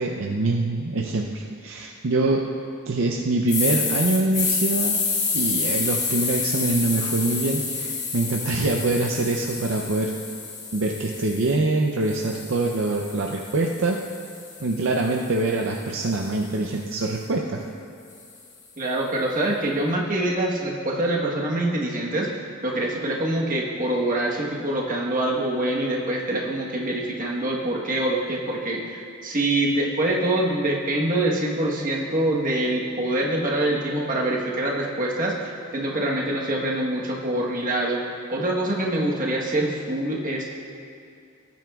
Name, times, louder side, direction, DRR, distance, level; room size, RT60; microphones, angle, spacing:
voice 1, 0.0-2.4 2.9-5.0 5.3-10.1 10.7-14.0 14.6-17.6, right 2 dB, 60° right, 1 dB, 0.6 m, -24 dB
sound 1, 3.5-11.5 12.0-16.2, left 4 dB, 35° left, 1.4 m, -29 dB
voice 2, 18.8-22.3 22.6-38.0 38.3-40.4, right 1 dB, 40° right, -2 dB, 1.2 m, -25 dB
17.5 x 9.1 x 2.4 m, 2.4 s
head